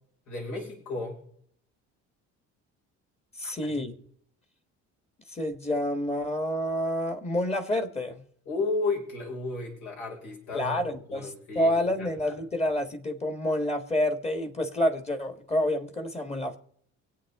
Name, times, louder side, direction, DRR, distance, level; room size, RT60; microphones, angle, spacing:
voice 1, 0.3-1.2 3.4-3.8 8.5-12.4, left 3 dB, 75° left, 5.6 m, -34 dB
voice 2, 3.3-3.9 5.3-8.2 10.5-16.6, left 1 dB, 20° left, 1.7 m, -28 dB
24.0 x 8.5 x 3.7 m
cardioid pair, 120°, 29 cm